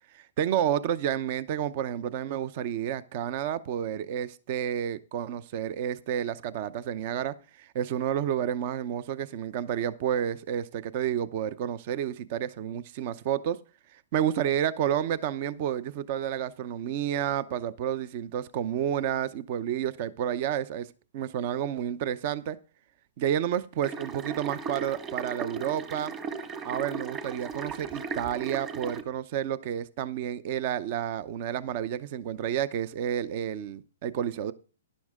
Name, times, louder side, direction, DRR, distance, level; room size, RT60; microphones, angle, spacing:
voice 1, 0.1-13.6 13.9-20.9 21.1-22.6 23.2-26.1 26.6-34.5, right 10 dB, 45° right, 0.7 m, -30 dB
sound 1, 23.8-29.0, right 5 dB, 25° right, 1.5 m, -37 dB
11.5 x 11.0 x 3.7 m
hypercardioid pair, 135°, 0 cm